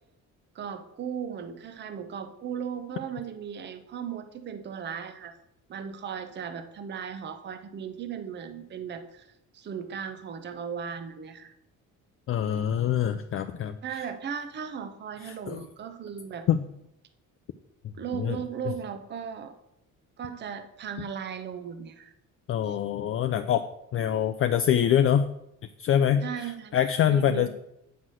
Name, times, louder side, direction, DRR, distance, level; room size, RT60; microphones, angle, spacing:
voice 1, 0.5-5.4 5.7-9.3 9.5-11.5 13.8-16.5 17.9-19.5 20.2-22.1 22.7-22.8 26.2-26.8 27.1-27.5, right 7 dB, 35° right, 10 dB, 0.7 m, -37 dB
voice 2, 12.3-14.0 15.2-15.7 16.5-16.7 18.1-18.4 22.5-23.6 23.9-25.2 25.8-27.5, left 9 dB, 40° left, 8 dB, 0.4 m, -25 dB
9.2 x 5.8 x 6.3 m, 0.82 s
cardioid pair, 175°, 33 cm